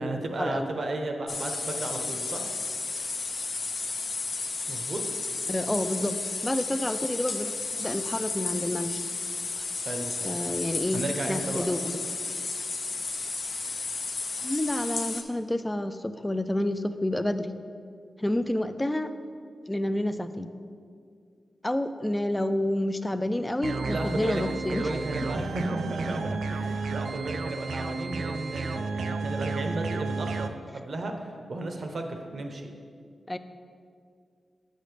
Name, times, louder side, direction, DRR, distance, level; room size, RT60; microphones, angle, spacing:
voice 1, 0.0-2.4 4.7-5.0 9.8-10.4 10.9-11.7 23.9-24.4 24.7-32.7, right 2 dB, 60° right, 4 dB, 0.8 m, -33 dB
sound 1, 1.3-15.2, left 4 dB, 60° left, 0.6 m, -33 dB
voice 2, 5.5-9.0 10.2-11.0 11.3-12.0 14.4-17.5 18.2-19.1 19.7-20.5 21.6-24.9 33.3-33.4, left 1 dB, 15° left, 10 dB, 0.4 m, -29 dB
sound 2, 23.6-30.5, right 4 dB, 90° right, 0.3 m, -32 dB
8.2 x 6.4 x 3.4 m, 2.2 s
cardioid pair, 75°, 0 cm